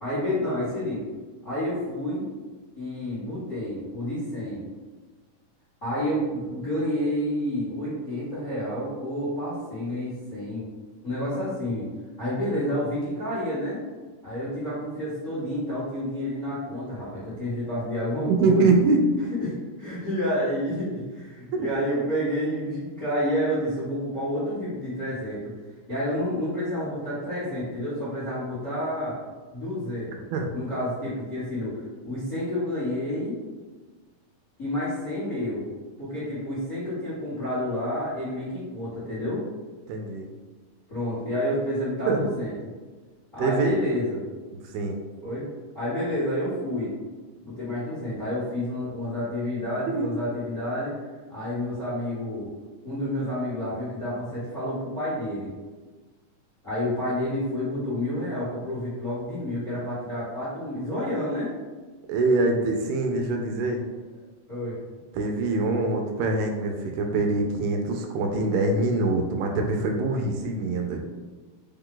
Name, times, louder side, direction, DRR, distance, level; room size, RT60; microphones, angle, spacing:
voice 1, 0.0-1.1 1.4-2.3 2.8-4.6 5.8-10.7 11.0-11.9 12.2-13.8 14.2-18.7 19.4-25.5 25.9-29.2 29.5-30.3 30.5-33.3 34.6-35.6 36.0-39.4 40.9-42.5 43.3-44.2 45.2-45.5 45.7-46.9 47.4-50.9 51.3-52.5 52.8-55.5 56.6-61.5 64.5-64.8, left 1 dB, 45° left, -12 dB, 1.0 m, -29 dB
voice 2, 18.3-19.0 21.5-21.7 30.3-30.5 39.9-40.3 42.1-42.2 43.4-43.8 44.7-45.0 49.9-50.2 62.1-63.8 65.1-71.0, right 3 dB, 80° right, 3 dB, 2.1 m, -24 dB
5.2 x 2.3 x 3.7 m, 1.3 s
omnidirectional pair, 4.0 m